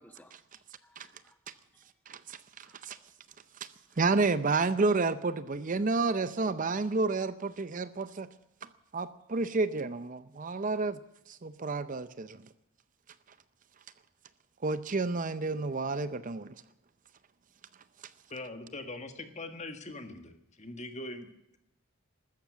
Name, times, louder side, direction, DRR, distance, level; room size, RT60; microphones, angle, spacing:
voice 1, 0.0-1.4 1.7-1.9 2.6-3.1 3.9-4.0 5.8-5.9, equal, 10° left, 1.3 m, -62 dB
voice 2, 2.1-3.0 4.0-8.3 8.9-11.0 11.3-12.4 14.6-16.5, right 3 dB, 40° right, 0.6 m, -30 dB
voice 3, 18.3-21.3, left 2 dB, 35° left, 1.7 m, -42 dB
14.5 x 13.0 x 7.4 m
head